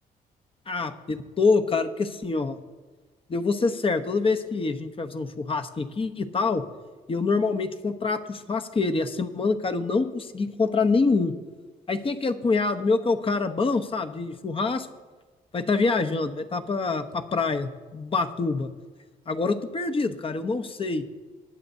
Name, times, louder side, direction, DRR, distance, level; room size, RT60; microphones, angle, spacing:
voice 1, 0.7-2.6 3.3-6.6 7.1-11.3 11.9-14.9 15.5-18.7 19.3-21.0, left 4 dB, 35° left, 8 dB, 0.9 m, -25 dB
19.5 x 7.8 x 2.7 m, 1.3 s
cardioid pair, 80°, 16 cm